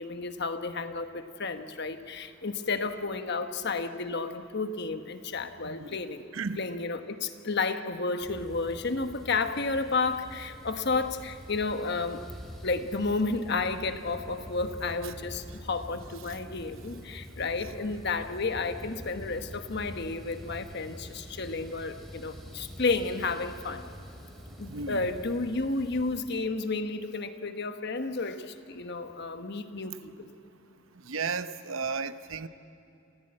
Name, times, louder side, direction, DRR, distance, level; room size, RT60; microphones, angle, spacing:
voice 1, 0.0-6.2 6.6-12.2 12.6-23.9 24.6-30.3, left 3 dB, 55° left, 8 dB, 1.1 m, -32 dB
voice 2, 5.6-6.0 6.3-6.6 15.0-15.1 17.6-17.7 24.7-25.1 31.0-32.5, right 5 dB, 75° right, 11 dB, 0.9 m, -34 dB
sound 1, 8.2-26.2, equal, ahead, 2.7 m, -45 dB
28.0 x 15.5 x 8.8 m, 2.7 s
head